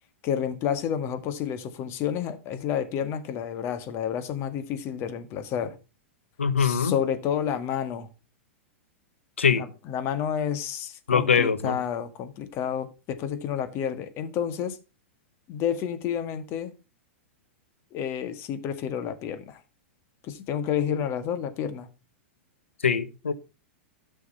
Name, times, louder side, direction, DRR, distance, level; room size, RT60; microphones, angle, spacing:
voice 1, 0.2-5.8 6.6-8.1 9.5-14.8 15.5-16.7 17.9-19.6 20.2-21.9, left 9 dB, 40° left, 1.7 m, -30 dB
voice 2, 6.4-6.9 9.4-9.6 11.1-11.8 22.8-23.3, left 6 dB, 85° left, 1.1 m, -22 dB
13.0 x 6.5 x 4.2 m
hypercardioid pair, 100°, 7 cm